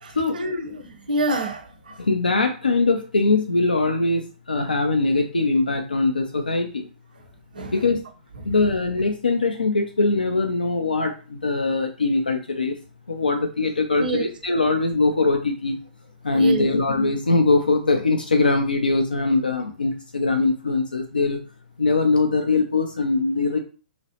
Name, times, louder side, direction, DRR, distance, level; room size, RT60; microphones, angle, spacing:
voice 1, 0.0-0.8 1.1-1.9 7.5-7.7 14.0-14.3 16.3-16.7, right 2 dB, 75° right, 6 dB, 0.6 m, -27 dB
voice 2, 2.0-6.9 7.7-8.0 8.4-12.8 13.1-15.8 16.2-21.4 21.8-23.6, left 3 dB, 85° left, 5 dB, 0.3 m, -22 dB
2.9 x 2.0 x 2.8 m, 0.37 s
figure-of-eight pair, 115°, 5 cm